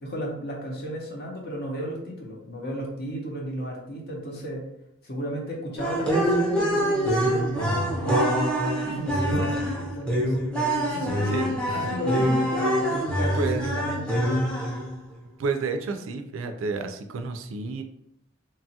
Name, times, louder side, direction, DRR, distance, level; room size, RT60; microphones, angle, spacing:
voice 1, 0.0-4.6 5.0-8.3 8.8-10.6 10.8-14.7, equal, 50° left, -1 dB, 0.7 m, -34 dB
sound 1, 5.8-15.0, equal, 5° left, 0.5 m, -25 dB
voice 2, 9.3-9.7 10.7-10.9 11.2-11.9 12.9-13.0 13.3-13.7 15.4-17.8, right 4 dB, 75° right, 6 dB, 0.3 m, -31 dB
2.9 x 2.3 x 2.7 m, 0.80 s
head